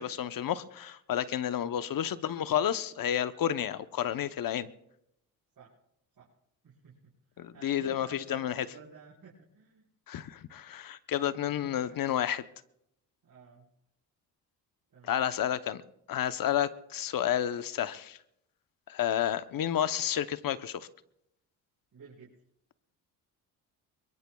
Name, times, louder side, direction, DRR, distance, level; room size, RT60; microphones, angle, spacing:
voice 1, 0.0-4.7 7.4-8.7 10.1-12.4 15.1-15.8 16.1-18.2 18.9-20.9, left 10 dB, 55° left, 13 dB, 0.9 m, -31 dB
voice 2, 6.6-7.1 7.5-9.9 11.2-12.0 13.2-13.7 14.9-15.3 21.9-22.3, right 5 dB, 55° right, -5 dB, 4.7 m, -53 dB
24.0 x 22.5 x 2.3 m, 0.79 s
supercardioid pair, 60°, 41 cm